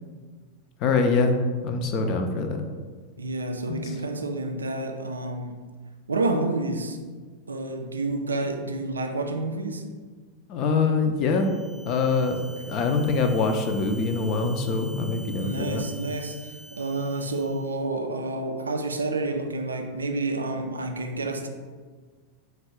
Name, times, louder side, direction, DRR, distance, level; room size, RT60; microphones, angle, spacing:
voice 1, 0.8-2.6 3.7-4.0 10.5-11.6 11.9-12.4 12.7-15.8, left 4 dB, 40° left, 6 dB, 0.4 m, -24 dB
voice 2, 3.2-5.6 6.1-7.0 7.5-9.8 12.3-12.4 15.4-21.5, right 2 dB, 75° right, 5 dB, 0.3 m, -29 dB
sound 1, 11.2-17.8, right 1 dB, 30° right, 0.6 m, -46 dB
4.0 x 2.2 x 3.6 m, 1.5 s
figure-of-eight pair, 90°, 0 cm